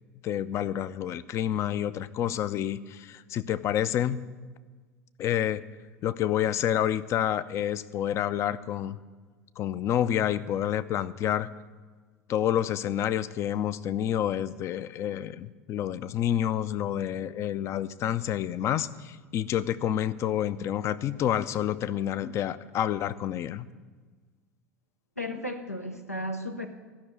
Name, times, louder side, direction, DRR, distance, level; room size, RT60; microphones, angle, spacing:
voice 1, 0.2-4.2 5.2-5.6 6.0-9.0 9.6-11.5 12.3-23.7, left 10 dB, 35° left, 15 dB, 0.5 m, -28 dB
voice 2, 25.2-26.7, left 1 dB, 90° left, 4 dB, 0.8 m, -34 dB
13.0 x 6.1 x 9.1 m, 1.4 s
figure-of-eight pair, 75°, 8 cm